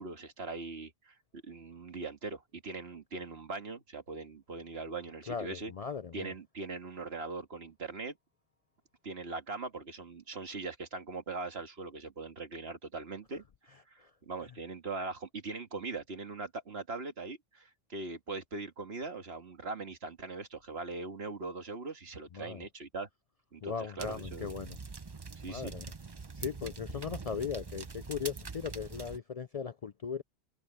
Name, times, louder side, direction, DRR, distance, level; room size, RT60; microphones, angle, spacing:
voice 1, 0.0-5.7 6.1-8.2 9.0-23.1 23.5-24.5 25.4-25.7, right 3 dB, 75° right, 2.1 m, -41 dB
voice 2, 5.3-6.3 22.4-22.6 23.6-24.8 25.5-25.9 26.4-30.2, left 6 dB, 50° left, 0.5 m, -38 dB
sound 1, 24.0-29.2, right 4 dB, 25° right, 0.7 m, -44 dB
omnidirectional pair, 1.1 m